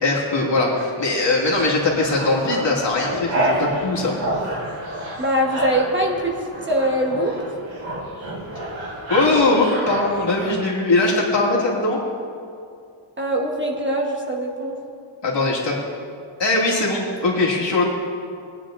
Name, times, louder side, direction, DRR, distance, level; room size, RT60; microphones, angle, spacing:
voice 1, 0.0-4.2 9.1-12.0 15.2-15.8 16.4-17.8, left 2 dB, 60° left, -4 dB, 2.4 m, -20 dB
sound 1, 1.3-10.5, right 1 dB, 65° right, 3.4 m, -29 dB
voice 2, 5.2-6.3 6.6-7.6 13.2-14.7, right 1 dB, 25° right, -1 dB, 1.2 m, -22 dB
21.0 x 9.8 x 2.6 m, 2.4 s
wide cardioid pair, 170°, 47 cm